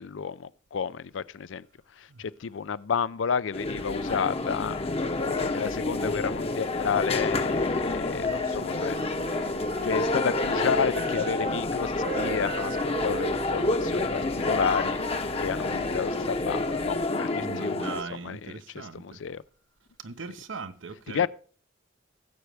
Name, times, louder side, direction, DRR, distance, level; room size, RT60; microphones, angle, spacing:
voice 1, 0.0-1.6 2.2-4.8 5.2-9.0 9.8-11.9 12.2-12.8 13.0-15.0 15.4-18.0 18.2-18.6 18.9-19.4 21.1-21.3, left 6 dB, 80° left, 0.5 m, -31 dB
sound 1, 3.5-18.0, left 2 dB, 30° left, 0.8 m, -29 dB
sound 2, 3.6-17.1, left 1 dB, 55° left, 1.4 m, -47 dB
Wind instrument woodwind instrument, 8.3-11.6 11.9-15.7, right 5 dB, 45° right, 0.5 m, -38 dB
voice 2, 17.4-19.2 20.0-21.3, right 4 dB, 85° right, 0.8 m, -39 dB
16.5 x 7.8 x 3.4 m
head